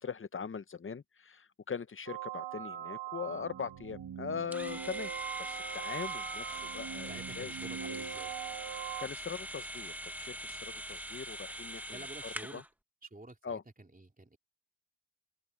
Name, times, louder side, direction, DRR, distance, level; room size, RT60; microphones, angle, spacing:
voice 1, 0.0-5.1 5.4-7.5 9.0-12.6 13.4-13.6, left 6 dB, 30° left, 0.6 m, -41 dB
sound 1, 2.1-9.1, right 10 dB, 85° right, 2.2 m, -42 dB
sound 2, 4.5-12.7, equal, 5° right, 1.0 m, -42 dB
voice 2, 7.1-8.3 11.9-12.6 13.0-14.4, right 2 dB, 20° right, 3.5 m, -50 dB
wide cardioid pair, 120°, 39 cm